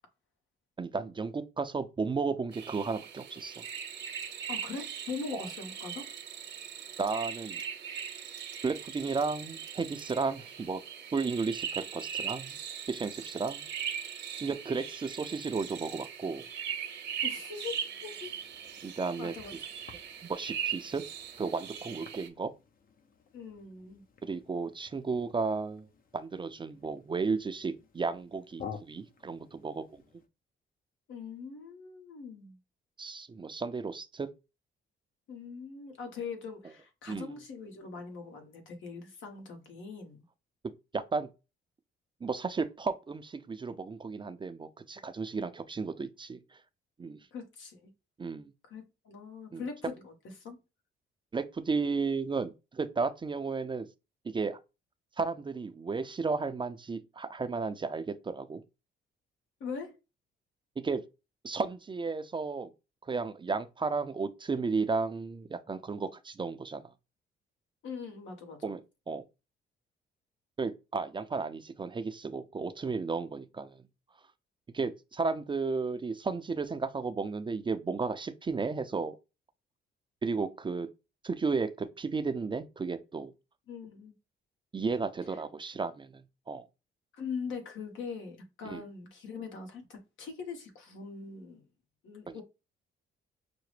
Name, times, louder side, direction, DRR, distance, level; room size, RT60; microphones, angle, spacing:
voice 1, 0.8-3.6 5.3-5.4 7.0-7.6 8.6-10.8 11.1-12.6 12.9-13.7 14.4-16.4 18.8-19.3 20.3-21.0 21.4-22.5 24.2-25.9 26.1-30.0 33.0-34.3 37.1-37.3 40.9-41.3 42.2-46.4 47.0-47.2 48.2-48.5 49.5-49.6 51.3-53.9 54.2-54.6 55.2-58.6 60.8-61.0 61.4-62.7 63.0-66.8 68.6-68.8 69.1-69.2 70.6-73.8 74.7-79.2 80.2-80.9 81.2-83.3 84.7-86.1 86.5-86.7 88.7-88.8 92.3-92.4, right 4 dB, 25° right, 0.4 m, -33 dB
sound 1, 2.5-22.3, right 8 dB, 60° right, 0.8 m, -40 dB
voice 2, 4.5-6.1 17.2-18.3 19.2-19.5 23.3-24.0 31.1-32.6 35.3-40.2 47.3-47.9 48.6-50.6 59.6-60.0 67.8-68.8 83.7-84.1 85.3-85.4 87.1-91.6 92.0-92.4, left 5 dB, 75° left, 1.3 m, -42 dB
sound 2, 18.2-30.3, left 7 dB, 45° left, 0.7 m, -52 dB
5.8 x 2.1 x 3.2 m
cardioid pair, 90°, 20 cm